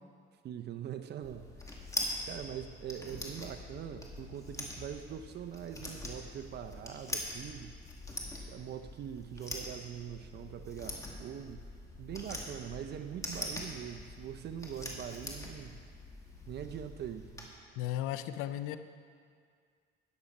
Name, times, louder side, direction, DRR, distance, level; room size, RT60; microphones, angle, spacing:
voice 1, 0.4-1.6 2.3-7.8 8.5-11.7 12.0-15.9 16.5-17.5, right 9 dB, 55° right, 8 dB, 0.7 m, -43 dB
sound 1, 1.2-17.4, left 1 dB, 15° left, 2.2 m, -43 dB
voice 2, 17.8-18.8, left 12 dB, 85° left, 11 dB, 0.6 m, -35 dB
13.5 x 9.8 x 5.3 m, 2.1 s
cardioid pair, 95°, 21 cm